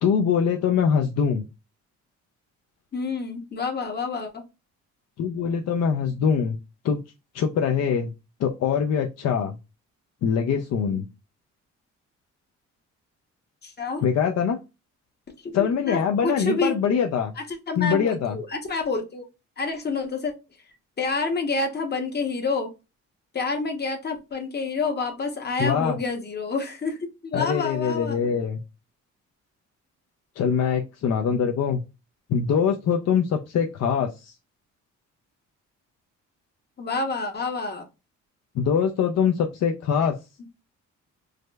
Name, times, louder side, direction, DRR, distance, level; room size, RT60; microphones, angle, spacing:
voice 1, 0.0-1.4 5.2-6.6 6.8-7.0 7.3-8.1 8.4-9.5 10.2-11.1 14.0-14.6 15.5-17.3 17.8-18.4 25.6-26.0 27.3-28.6 30.4-31.8 32.3-34.3 38.6-40.1, left 7 dB, 60° left, 3 dB, 0.5 m, -23 dB
voice 2, 2.9-4.4 13.6-14.0 15.4-16.7 17.7-19.3 19.6-20.3 21.0-22.7 23.3-28.2 36.8-37.9, left 3 dB, 35° left, 5 dB, 0.8 m, -28 dB
4.9 x 2.1 x 2.2 m, 0.27 s
cardioid pair, 90°, 30 cm